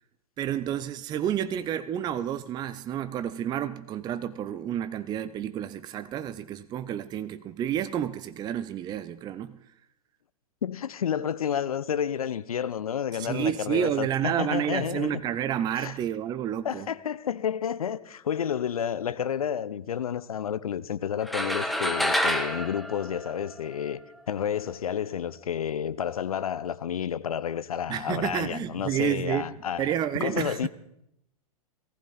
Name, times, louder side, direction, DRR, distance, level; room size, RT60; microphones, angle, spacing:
voice 1, 0.4-9.6 13.1-16.9 27.9-29.5 29.8-30.7, right 10 dB, 20° right, 0.6 m, -30 dB
voice 2, 10.6-15.2 15.7-15.9 16.6-24.0 24.3-29.9 30.2-30.7, left 8 dB, 70° left, 0.8 m, -30 dB
sound 1, 21.3-23.9, equal, ahead, 1.2 m, -28 dB
19.0 x 15.0 x 4.2 m
figure-of-eight pair, 105°, 19 cm